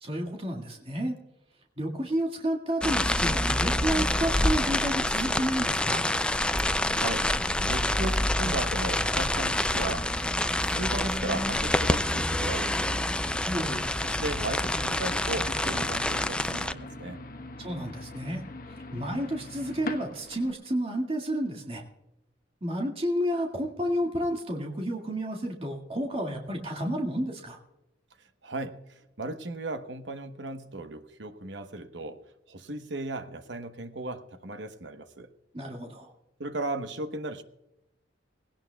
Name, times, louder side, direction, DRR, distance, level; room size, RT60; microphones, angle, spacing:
voice 1, 0.0-1.2 1.8-6.0 13.4-13.9 17.6-18.4 18.8-21.8 22.6-27.6 35.5-36.1, equal, 30° right, 0 dB, 2.0 m, -31 dB
sound 1, 2.8-16.7, left 1 dB, 5° left, 0.3 m, -27 dB
sound 2, 3.0-20.5, left 2 dB, 50° left, 1.1 m, -43 dB
voice 2, 6.6-7.3 7.7-10.3 10.6-13.0 14.0-17.2 28.4-32.2 32.5-35.3 36.4-37.4, right 2 dB, 70° right, 9 dB, 1.0 m, -36 dB
19.0 x 17.0 x 2.3 m, 0.92 s
head